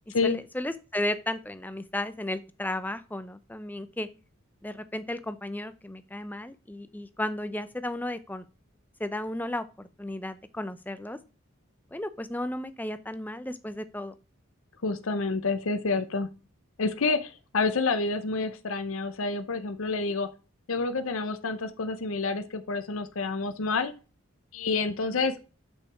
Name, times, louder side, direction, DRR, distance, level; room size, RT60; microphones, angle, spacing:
voice 1, 0.2-4.1 4.6-8.4 9.0-9.6 10.0-11.2 11.9-14.1, left 1 dB, 10° left, 12 dB, 0.5 m, -34 dB
voice 2, 14.8-16.3 16.8-20.3 20.7-23.9 24.5-25.4, left 3 dB, 70° left, 9 dB, 0.7 m, -28 dB
6.4 x 5.9 x 5.8 m, 0.34 s
head